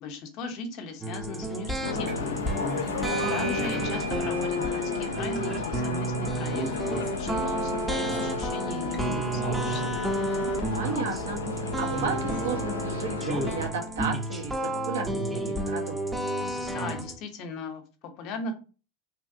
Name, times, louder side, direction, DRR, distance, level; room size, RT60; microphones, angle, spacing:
voice 1, 0.0-2.4 3.3-10.0 16.7-18.5, left 3 dB, 50° left, 6 dB, 0.7 m, -38 dB
sound 1, 1.0-17.2, right 1 dB, 10° right, 0.6 m, -31 dB
sound 2, 1.8-13.7, left 5 dB, 80° left, 0.3 m, -33 dB
sound 3, 2.1-2.4 2.7-10.0, right 12 dB, 45° right, 0.9 m, -42 dB
voice 2, 2.8-3.5 10.7-15.2 15.5-16.0, right 5 dB, 75° right, 2 dB, 0.9 m, -33 dB
2.8 x 2.5 x 2.5 m, 0.35 s
hypercardioid pair, 90°, 0 cm